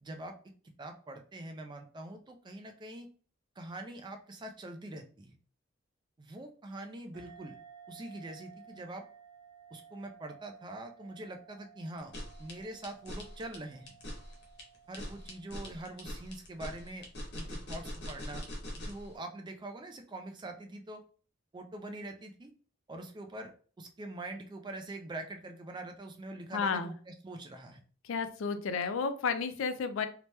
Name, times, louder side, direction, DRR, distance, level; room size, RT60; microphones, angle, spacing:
voice 1, 0.0-0.4 0.8-3.1 3.6-5.4 6.2-7.6 7.9-9.1 9.7-12.1 12.4-13.9 14.9-17.1 17.3-18.5 18.8-21.0 21.5-22.5 22.9-27.8, right 2 dB, 20° right, 6 dB, 0.3 m, -44 dB
sound 1, 7.1-16.2, right 7 dB, 60° right, 1.0 m, -56 dB
sound 2, 12.0-19.1, left 1 dB, 55° left, 0.8 m, -42 dB
voice 2, 26.5-26.9 28.0-30.1, left 5 dB, 70° left, 10 dB, 0.4 m, -32 dB
2.8 x 2.1 x 3.2 m, 0.41 s
head